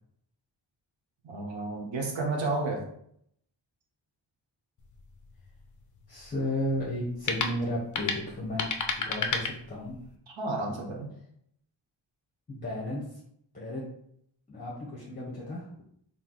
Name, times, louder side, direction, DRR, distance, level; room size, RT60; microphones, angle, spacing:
voice 1, 1.2-2.8 10.3-11.1, right 2 dB, 70° right, 1 dB, 0.8 m, -31 dB
sound 1, 4.8-10.2, left 5 dB, 45° left, 0.4 m, -34 dB
voice 2, 6.1-10.0 12.5-13.0 13.5-13.8 14.5-15.7, left 1 dB, 20° left, -5 dB, 0.8 m, -34 dB
4.5 x 2.0 x 3.8 m, 0.69 s
wide cardioid pair, 160°, 46 cm